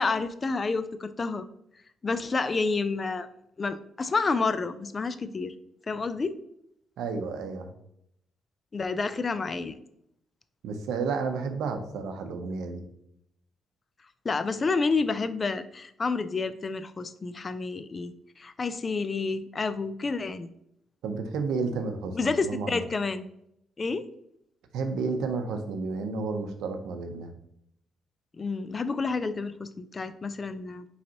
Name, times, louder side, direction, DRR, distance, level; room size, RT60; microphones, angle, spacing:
voice 1, 0.0-1.5 2.0-3.3 3.6-5.5 5.9-6.4 8.7-9.7 14.2-18.1 18.4-20.5 22.1-23.3 23.8-24.1 28.4-30.8, left 4 dB, 35° left, 13 dB, 0.3 m, -29 dB
voice 2, 7.0-7.7 10.6-12.8 21.0-22.8 24.7-27.3, right 4 dB, 85° right, 6 dB, 0.6 m, -31 dB
5.1 x 3.2 x 2.9 m, 0.75 s
cardioid pair, 90°, 0 cm